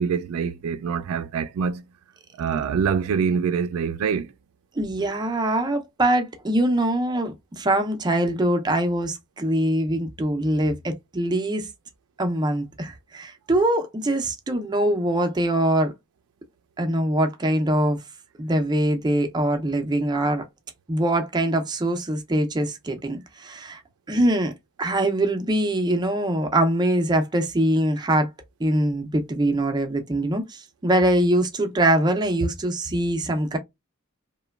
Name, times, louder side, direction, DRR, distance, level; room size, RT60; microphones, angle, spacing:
voice 1, 0.0-1.8 2.4-4.3, right 6 dB, 85° right, 0.3 m, -25 dB
voice 2, 4.8-11.7 12.2-15.9 16.8-18.0 18.4-20.5 20.9-23.8 24.1-24.5 24.8-28.3 28.6-33.6, right 1 dB, 20° right, 0.4 m, -23 dB
3.0 x 2.1 x 2.2 m
head